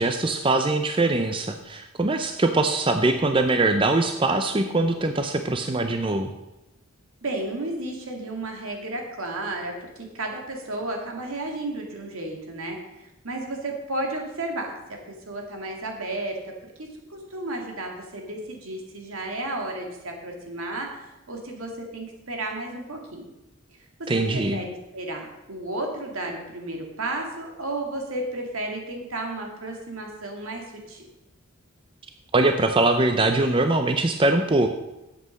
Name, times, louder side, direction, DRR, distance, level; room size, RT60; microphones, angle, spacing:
voice 1, 0.0-6.3 24.1-24.6 32.3-34.7, right 2 dB, 25° right, 6 dB, 0.4 m, -22 dB
voice 2, 7.2-13.0 13.2-15.0 15.3-16.4 16.8-23.3 24.0-31.1, right 2 dB, 75° right, 2 dB, 2.1 m, -33 dB
8.3 x 7.6 x 6.3 m, 0.96 s
head